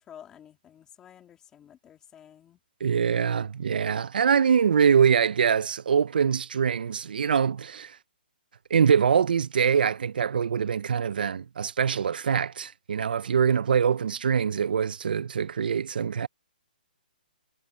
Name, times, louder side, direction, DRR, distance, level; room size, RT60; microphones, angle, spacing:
voice 1, 0.0-2.6, left 9 dB, 10° left, 2.9 m, -51 dB
voice 2, 2.8-8.0 8.7-16.3, right 7 dB, 70° right, 0.5 m, -24 dB
hypercardioid pair, 165°, 5 cm